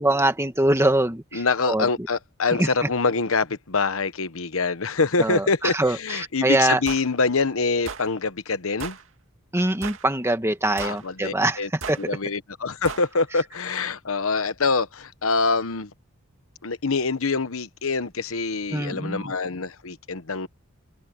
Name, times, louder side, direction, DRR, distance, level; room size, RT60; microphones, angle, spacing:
voice 1, 0.0-1.8 2.6-2.7 5.2-6.8 9.5-12.1 18.7-19.3, right 1 dB, 10° right, 1.6 m, -23 dB
voice 2, 1.3-9.0 10.8-11.7 12.1-15.9 16.6-20.5, left 4 dB, 65° left, 1.1 m, -25 dB
sound 1, 6.9-7.1 7.9-8.1 8.8-9.0 9.8-10.1 10.8-11.1 11.8-12.0 12.8-13.1, right 5 dB, 65° right, 2.5 m, -35 dB
head